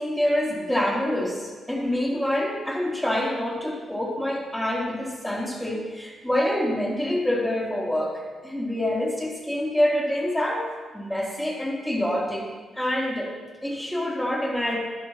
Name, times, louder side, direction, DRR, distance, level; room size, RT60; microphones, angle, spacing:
voice 1, 0.0-10.7 10.9-12.5 12.7-13.3 13.6-14.8, left 1 dB, 5° left, -3 dB, 3.3 m, -26 dB
11.5 x 11.5 x 3.0 m, 1.4 s
hypercardioid pair, 40°, 0 cm